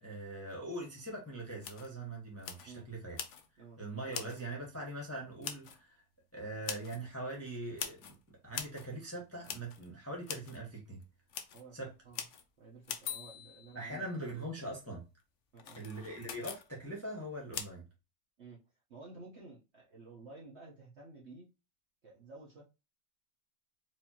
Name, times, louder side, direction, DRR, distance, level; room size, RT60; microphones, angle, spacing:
voice 1, 0.0-3.2 3.8-6.0 6.3-11.0 11.7-11.9 13.7-15.0 15.8-17.9, right 1 dB, 10° left, 1.0 m, -42 dB
sound 1, 1.0-1.1 1.6-1.9 2.4-2.7 3.2-3.5 4.1-4.4 5.4-5.8 6.6-7.0 7.8-8.2 8.5-8.9 9.4-9.9 10.2-10.6 11.0-11.1 11.3-11.6 12.1-12.4 12.8-14.1 15.6-16.7 17.5-17.7, left 8 dB, 70° left, 0.7 m, -43 dB
voice 2, 12.6-14.1 15.5-15.8 18.4-18.6 18.9-21.5 22.0-22.6, right 3 dB, 45° right, 1.1 m, -52 dB
4.6 x 2.8 x 2.8 m
omnidirectional pair, 1.9 m